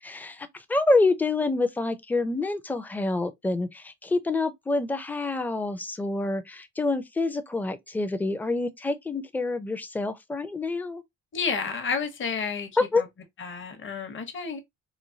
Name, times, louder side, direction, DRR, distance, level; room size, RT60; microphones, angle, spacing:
voice 1, 0.0-11.0 12.9-13.0, left 3 dB, 5° left, 0.4 m, -27 dB
voice 2, 11.3-12.7 13.0-13.1 13.4-14.6, left 5 dB, 40° left, 0.8 m, -30 dB
3.1 x 2.2 x 2.6 m
cardioid pair, 90°, 30 cm